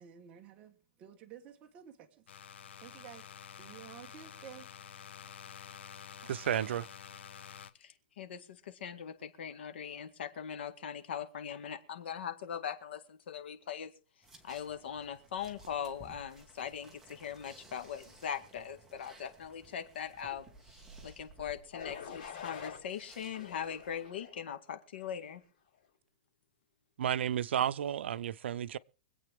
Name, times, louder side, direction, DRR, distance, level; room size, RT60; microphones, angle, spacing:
voice 1, 0.0-2.1 2.8-3.2 3.6-4.7, right 9 dB, 20° right, 1.2 m, -52 dB
Macbook Electromagnetic Sounds, 2.3-7.7, left 8 dB, 90° left, 1.0 m, -49 dB
voice 2, 6.3-6.9 27.0-28.8, right 10 dB, 90° right, 0.6 m, -32 dB
voice 3, 7.8-13.9 14.4-25.4, left 8 dB, 70° left, 2.0 m, -41 dB
sound 1, 14.2-24.0, right 2 dB, 5° right, 1.6 m, -57 dB
sound 2, 21.7-22.8 23.3-24.4 24.9-25.3, left 7 dB, 45° left, 6.4 m, -46 dB
24.5 x 8.4 x 3.6 m
supercardioid pair, 175°, 6 cm